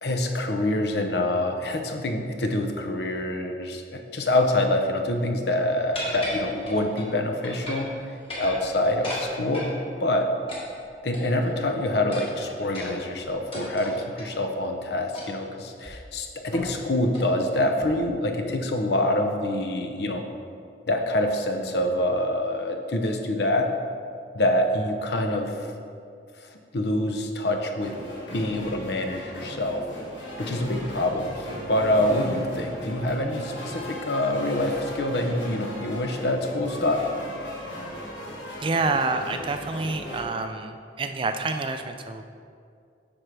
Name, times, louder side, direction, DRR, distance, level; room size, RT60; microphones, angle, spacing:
voice 1, 0.0-7.9 8.4-10.3 11.0-20.2 20.9-23.7 24.3-25.7 26.5-27.9 28.3-29.9 30.4-37.0, left 1 dB, 65° left, 4 dB, 0.7 m, -26 dB
sound 1, 5.9-7.1 7.4-7.9 8.2-9.7 10.5-11.5 12.1-14.3 15.1-15.5 15.8-15.9 16.5-16.8 17.1-17.3 17.8-18.2, left 1 dB, 30° left, 1.7 m, -36 dB
sound 2, 27.8-40.2, left 1 dB, 90° left, 1.6 m, -37 dB
voice 2, 38.6-42.2, right 3 dB, 30° right, 7 dB, 0.3 m, -28 dB
8.7 x 6.1 x 3.3 m, 2.3 s
head